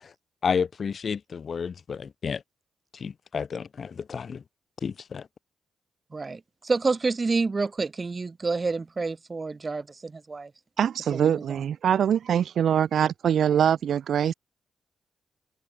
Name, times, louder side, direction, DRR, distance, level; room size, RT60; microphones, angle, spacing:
voice 1, 0.4-2.4 2.9-4.4 4.8-5.3, left 6 dB, 45° left, 3.0 m, -31 dB
voice 2, 6.1-10.5 11.1-11.4, right 4 dB, 25° right, 2.5 m, -28 dB
voice 3, 10.8-14.3, right 9 dB, 65° right, 2.4 m, -23 dB
cardioid pair, 125°, 0 cm